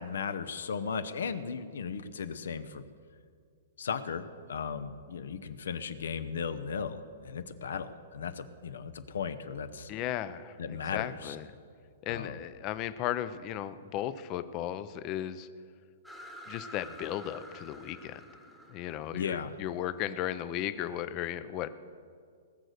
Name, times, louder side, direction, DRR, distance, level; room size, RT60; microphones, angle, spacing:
voice 1, 0.0-2.8 3.8-9.9 10.6-11.4 12.1-12.4 19.1-19.5, left 6 dB, 85° left, 11 dB, 0.8 m, -36 dB
voice 2, 9.9-11.5 12.0-15.5 16.5-18.2 18.7-21.7, left 11 dB, 25° left, 14 dB, 0.4 m, -35 dB
sound 1, 16.0-20.6, equal, ahead, 1.1 m, -50 dB
19.5 x 6.7 x 6.5 m, 2.2 s
hypercardioid pair, 170°, 0 cm